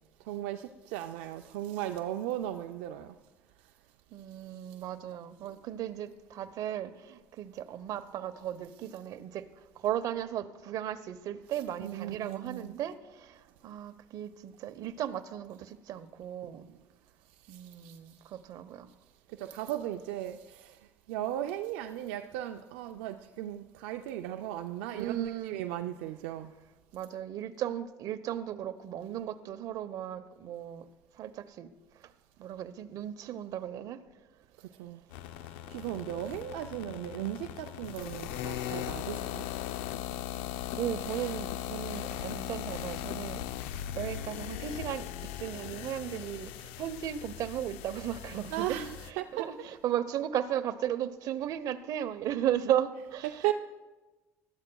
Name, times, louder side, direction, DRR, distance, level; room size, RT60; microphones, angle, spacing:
voice 1, 0.2-3.2 11.8-12.7 16.4-16.5 17.4-18.2 19.3-26.5 34.6-35.0 35.4-39.5 48.5-49.4 53.3-53.5, right 13 dB, 85° right, 0.4 m, -37 dB
voice 2, 4.1-16.7 17.5-18.9 24.9-25.6 26.9-30.8 31.1-31.7 31.9-32.1 32.4-34.0 40.8-43.4 43.9-45.1 45.4-48.8 49.1-53.5, right 11 dB, 65° right, 0.8 m, -36 dB
sound 1, 35.1-49.1, left 12 dB, 90° left, 0.5 m, -39 dB
20.0 x 13.0 x 2.3 m
supercardioid pair, 85°, 7 cm